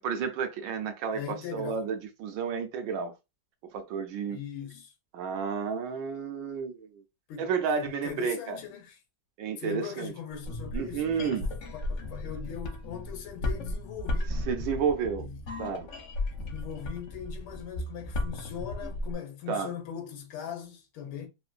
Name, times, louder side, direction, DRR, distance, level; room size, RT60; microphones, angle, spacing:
voice 1, 0.0-3.1 3.7-4.4 5.1-6.9 7.4-8.6 9.4-10.1 10.7-11.4 14.3-15.3 15.6-15.9 19.5-19.7, right 6 dB, 75° right, 1.2 m, -31 dB
voice 2, 1.1-1.9 4.3-4.9 7.3-7.5 7.8-9.0 9.6-11.5 11.7-14.3 15.2-15.4 16.3-21.3, left 8 dB, 90° left, 1.6 m, -40 dB
sound 1, 10.3-19.1, left 1 dB, 65° left, 0.7 m, -35 dB
3.7 x 2.5 x 2.4 m
omnidirectional pair, 2.2 m